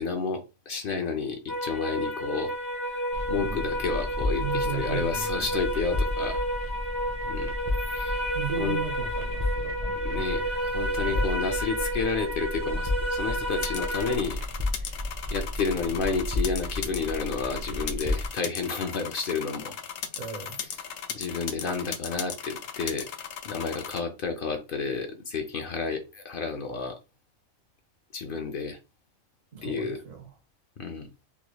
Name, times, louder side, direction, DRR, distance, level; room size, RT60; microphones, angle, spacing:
voice 1, 0.0-2.5 2.9-3.0 3.3-6.4 7.2-7.5 7.9-8.8 10.0-14.4 14.8-14.9 15.3-19.8 21.1-23.1 23.4-27.0 28.1-28.8 29.6-30.0 30.8-31.1, left 5 dB, 55° left, 0.7 m, -31 dB
sound 1, 1.5-14.2, equal, 15° left, 1.1 m, -31 dB
sound 2, 3.1-18.3, left 1 dB, 25° right, 0.4 m, -33 dB
voice 2, 4.4-5.6 8.3-10.5 11.0-11.4 20.2-20.6 29.5-30.3, right 7 dB, 75° right, 1.3 m, -36 dB
sound 3, 13.6-24.0, left 8 dB, 85° left, 1.0 m, -37 dB
3.3 x 3.0 x 2.3 m
omnidirectional pair, 1.3 m